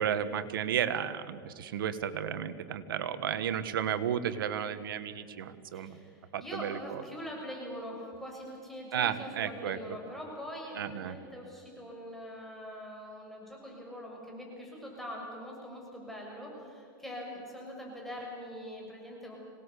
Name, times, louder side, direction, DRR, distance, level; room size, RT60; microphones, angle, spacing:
voice 1, 0.0-6.0 6.3-6.8 8.9-9.8 10.7-11.2, right 9 dB, 90° right, 12 dB, 1.5 m, -33 dB
voice 2, 5.7-19.4, equal, ahead, -2 dB, 6.4 m, -43 dB
26.0 x 19.0 x 8.4 m, 2.3 s
supercardioid pair, 120°, 11 cm